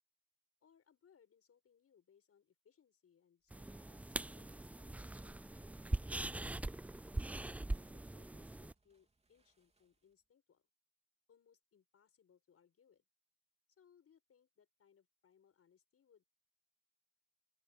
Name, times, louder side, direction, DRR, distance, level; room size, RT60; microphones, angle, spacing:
voice 1, 0.6-6.6 7.3-10.7 11.3-13.1 13.7-16.3, left 7 dB, 50° left, 6.3 m, -71 dB
sound 1, 3.4-10.3, right 3 dB, 20° right, 3.4 m, -76 dB
sound 2, 3.5-8.7, right 2 dB, 5° right, 0.3 m, -42 dB
open air
cardioid pair, 90°, 30 cm